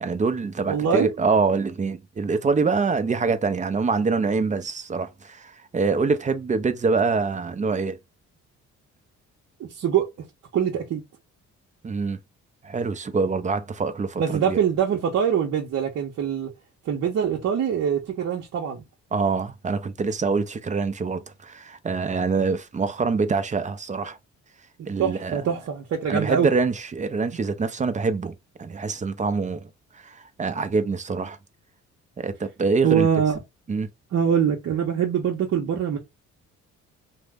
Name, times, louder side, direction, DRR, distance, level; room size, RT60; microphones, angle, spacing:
voice 1, 0.0-8.0 11.8-12.2 12.6-14.6 19.1-24.2 24.9-25.4 26.1-29.7 29.9-31.4 32.2-33.1 33.7-33.9, right 4 dB, 25° right, 0.5 m, -25 dB
voice 2, 0.7-1.1 9.6-10.1 10.5-11.0 14.2-16.5 16.8-18.8 25.0-26.5 32.8-33.4 34.1-36.0, right 8 dB, 55° right, 0.7 m, -23 dB
2.7 x 2.0 x 3.3 m
cardioid pair, 90°, 30 cm